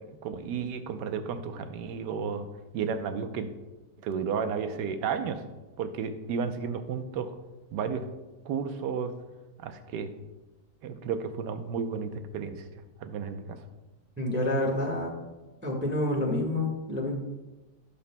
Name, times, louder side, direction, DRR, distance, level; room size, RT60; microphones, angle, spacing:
voice 1, 0.1-2.5 2.7-3.5 4.0-5.4 5.8-7.3 7.7-8.0 8.4-9.1 9.6-10.1 10.8-13.6, right 6 dB, 75° right, 8 dB, 1.3 m, -32 dB
voice 2, 14.2-15.1 15.6-17.1, left 1 dB, 10° right, -1 dB, 1.0 m, -28 dB
16.5 x 7.0 x 2.2 m, 1.1 s
omnidirectional pair, 1.9 m